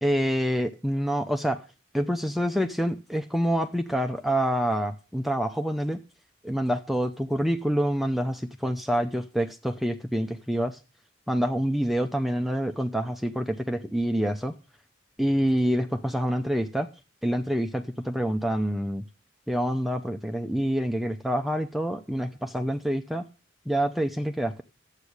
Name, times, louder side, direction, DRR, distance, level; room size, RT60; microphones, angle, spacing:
voice 1, 0.0-1.6 1.9-6.0 6.4-10.8 11.3-14.5 15.2-16.9 17.2-19.0 19.5-23.2 23.7-24.6, equal, ahead, 0.7 m, -27 dB
12.0 x 8.3 x 6.5 m
head